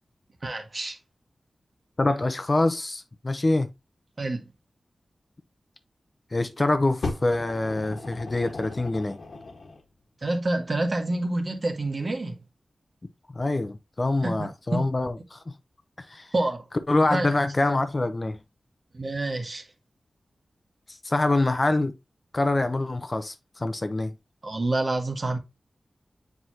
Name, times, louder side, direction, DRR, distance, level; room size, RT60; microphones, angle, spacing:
voice 1, 0.4-1.0 4.2-4.4 10.2-12.3 14.2-14.8 16.3-16.6 17.0-17.3 18.9-19.6 24.4-25.4, right 2 dB, 45° right, 1.5 m, -27 dB
voice 2, 2.0-3.7 6.3-9.2 13.3-15.6 16.0-16.3 16.9-18.4 21.0-21.9 22.3-24.2, left 2 dB, 30° left, 0.7 m, -25 dB
Fire, 7.0-9.8 10.7-10.8, left 3 dB, 70° left, 1.5 m, -36 dB
7.6 x 4.7 x 2.9 m
wide cardioid pair, 100°, 0 cm